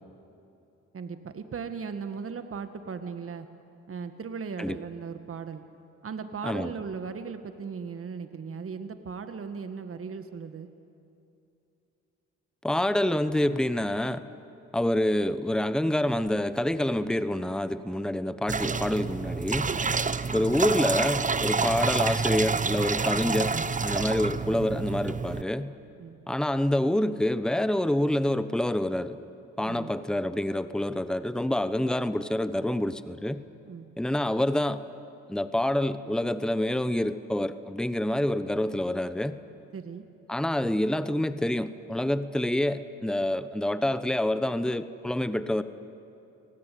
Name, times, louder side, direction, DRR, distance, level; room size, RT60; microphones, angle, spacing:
voice 1, 0.9-3.5 3.9-5.6 6.0-10.7 19.7-20.0 26.0-26.2 29.6-29.9 33.7-33.9 39.7-40.1, right 5 dB, 50° right, 9 dB, 1.8 m, -37 dB
voice 2, 12.6-14.2 14.7-19.7 20.3-25.7 26.3-29.2 29.6-33.4 34.0-34.8 35.3-39.4 40.3-45.6, left 1 dB, ahead, 12 dB, 1.1 m, -27 dB
sound 1, 18.5-25.4, right 4 dB, 25° right, 1.0 m, -28 dB
30.0 x 19.0 x 9.4 m, 2.7 s
supercardioid pair, 60°, 29 cm